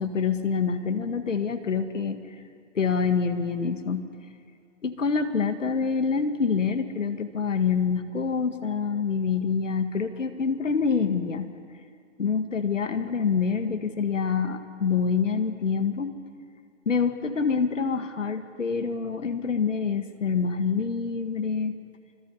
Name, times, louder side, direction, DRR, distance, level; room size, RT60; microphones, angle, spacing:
voice 1, 0.0-2.2 2.8-4.1 4.8-11.5 12.2-16.1 16.9-21.7, left 5 dB, 90° left, 9 dB, 1.9 m, -26 dB
26.5 x 25.5 x 5.6 m, 2.4 s
hypercardioid pair, 145°, 37 cm